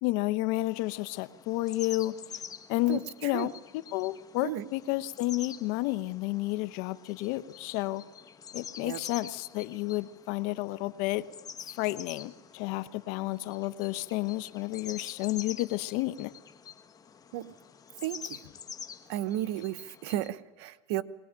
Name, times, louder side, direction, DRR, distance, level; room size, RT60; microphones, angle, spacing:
voice 1, 0.0-2.2 2.7-8.0 8.5-11.2 11.8-16.3, left 18 dB, 65° left, 14 dB, 1.0 m, -31 dB
sound 1, 0.6-20.3, left 7 dB, 25° left, 1.3 m, -47 dB
voice 2, 18.0-18.4 19.1-21.0, right 14 dB, 70° right, 12 dB, 1.1 m, -33 dB
22.5 x 19.0 x 8.9 m, 1.2 s
supercardioid pair, 120°, 14 cm